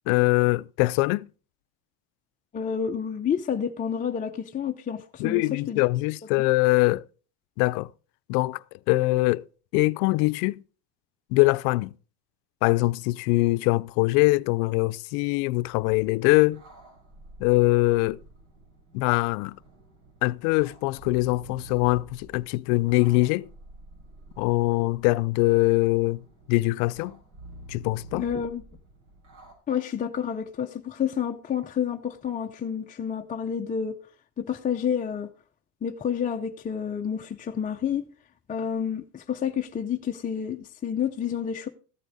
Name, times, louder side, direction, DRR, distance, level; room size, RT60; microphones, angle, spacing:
voice 1, 0.1-1.3 5.2-7.0 7.6-7.9 8.3-8.6 8.9-9.5 9.7-10.6 11.3-11.9 12.6-16.6 17.4-18.2 18.9-19.6 20.2-23.5 24.4-26.2 26.5-27.2 27.7-28.2, left 22 dB, 90° left, 0.5 m, -23 dB
voice 2, 2.5-5.8 6.4-6.5 28.1-28.6 29.7-34.0 34.4-35.3 35.8-38.1 38.5-41.7, left 8 dB, 20° left, 0.5 m, -29 dB
sound 1, 15.8-29.5, right 2 dB, 60° right, 4.9 m, -49 dB
14.0 x 8.3 x 4.0 m
cardioid pair, 140°, 45 cm